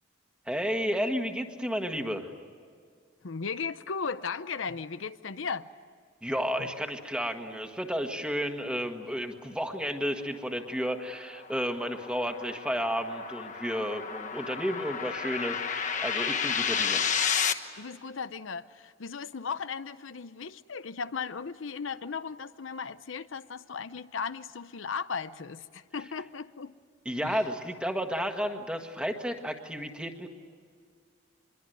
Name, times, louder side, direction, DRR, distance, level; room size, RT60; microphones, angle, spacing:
voice 1, 0.5-2.3 6.2-17.0 27.0-30.3, equal, 5° right, 4 dB, 1.6 m, -32 dB
voice 2, 3.2-5.7 17.8-26.7 27.2-27.4, left 5 dB, 80° left, 13 dB, 0.7 m, -36 dB
sound 1, 10.7-17.5, left 7 dB, 40° left, 1.1 m, -31 dB
26.5 x 22.5 x 9.2 m, 2.1 s
head